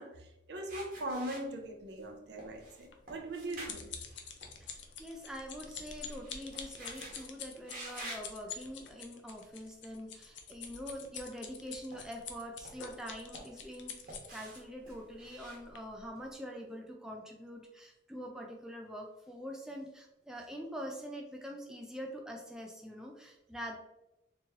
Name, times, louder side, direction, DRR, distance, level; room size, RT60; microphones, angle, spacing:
voice 1, 0.0-3.9, right 1 dB, 65° right, 3 dB, 0.6 m, -40 dB
sound 1, 0.7-2.0 2.4-4.9 5.2-7.2 7.6-8.3 9.0-9.2 11.5-12.3 12.6-13.8 14.1-16.2, right 1 dB, 50° right, 1.1 m, -49 dB
sound 2, 2.9-14.6 15.2-15.4 15.8-15.9, left 7 dB, 75° left, 0.5 m, -46 dB
voice 2, 4.6-23.8, equal, 5° right, 0 dB, 0.4 m, -44 dB
3.5 x 2.9 x 2.9 m, 0.92 s
head